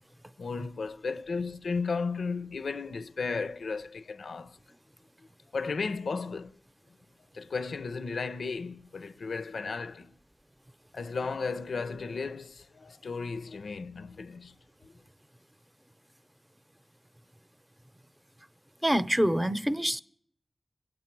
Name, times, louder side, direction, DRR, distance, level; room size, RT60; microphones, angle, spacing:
voice 1, 0.4-4.6 5.5-6.5 7.3-10.1 10.9-14.5, left 4 dB, 85° left, 0.5 m, -34 dB
voice 2, 18.8-20.0, equal, 15° right, 0.7 m, -26 dB
25.0 x 8.9 x 4.5 m
cardioid pair, 45°, 0 cm